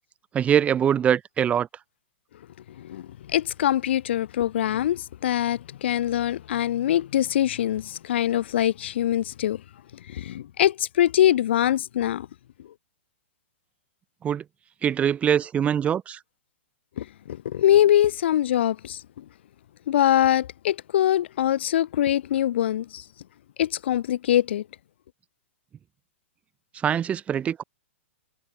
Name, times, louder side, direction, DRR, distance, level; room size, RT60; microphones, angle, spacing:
voice 1, 0.3-1.7 14.2-14.4 14.8-16.2 26.8-27.6, right 9 dB, 20° right, 0.8 m, -23 dB
voice 2, 2.8-9.6 10.1-12.3 17.0-19.2 19.9-23.0 23.6-24.6, left 11 dB, 60° left, 2.3 m, -23 dB
figure-of-eight pair, 110°, 7 cm